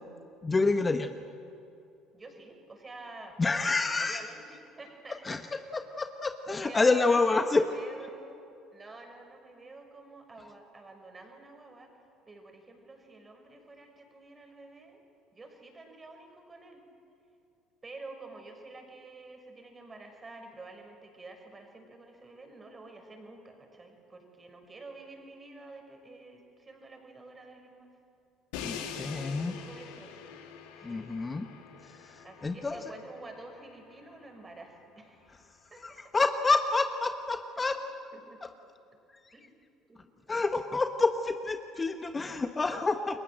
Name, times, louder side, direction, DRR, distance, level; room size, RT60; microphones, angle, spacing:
voice 1, 0.4-1.1 3.4-4.3 5.2-5.4 5.7-7.6 28.6-29.5 30.8-31.5 31.8-32.9 35.8-37.8 38.4-38.5 40.3-43.2, left 3 dB, 25° left, 8 dB, 1.3 m, -28 dB
voice 2, 2.1-3.3 3.8-5.2 6.5-8.4 8.7-11.9 12.3-15.0 15.3-16.8 17.8-27.9 28.9-30.1 30.7-31.1 32.2-35.4 35.7-35.8 38.1-38.4 39.3-39.5 39.9-40.0, right 2 dB, 25° right, 4 dB, 6.0 m, -49 dB
Crash cymbal, 28.5-34.5, left 7 dB, 70° left, 2.6 m, -44 dB
29.5 x 22.5 x 7.7 m, 2.6 s
figure-of-eight pair, 60°, 0 cm